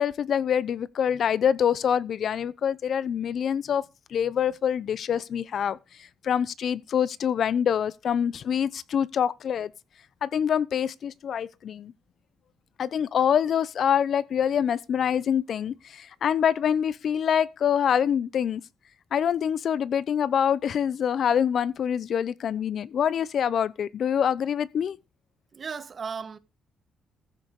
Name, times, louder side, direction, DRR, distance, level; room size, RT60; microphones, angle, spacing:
voice 1, 0.0-3.8 4.1-9.7 10.2-11.9 12.8-18.6 19.1-25.0, left 8 dB, 60° left, 0.9 m, -25 dB
voice 2, 25.5-26.4, right 5 dB, 45° right, 1.3 m, -35 dB
15.0 x 6.7 x 6.5 m
cardioid pair, 90°, 0 cm